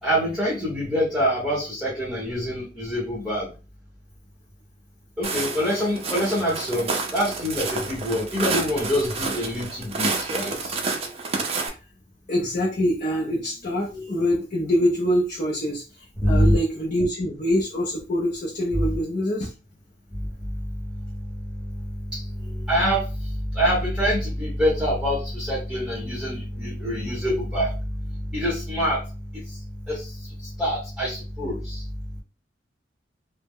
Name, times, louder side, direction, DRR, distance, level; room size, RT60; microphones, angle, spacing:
voice 1, 0.0-3.5 5.2-10.7 16.2-16.5 22.1-22.2 22.7-23.1 23.5-27.7 28.3-29.0 29.9-30.1 30.6-31.8, equal, 5° right, -7 dB, 0.8 m, -25 dB
Walk footsteps, 5.2-11.7, right 4 dB, 35° right, 0.4 m, -29 dB
voice 2, 12.3-19.5, equal, 45° left, -2 dB, 0.5 m, -25 dB
2.1 x 2.0 x 3.5 m, 0.32 s
head